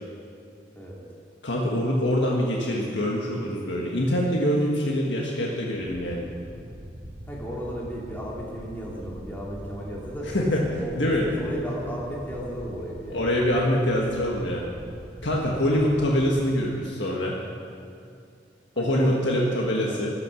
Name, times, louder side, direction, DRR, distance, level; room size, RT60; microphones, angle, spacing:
voice 1, 1.4-6.3 10.3-11.2 13.1-14.6 15.2-17.4 18.8-20.1, equal, 80° left, -2 dB, 1.5 m, -24 dB
sound 1, 5.8-16.5, equal, 50° right, 2.0 m, -43 dB
voice 2, 7.3-10.9 11.2-13.3 18.8-20.1, equal, 10° left, -4 dB, 2.5 m, -35 dB
14.0 x 12.0 x 6.3 m, 2.4 s
head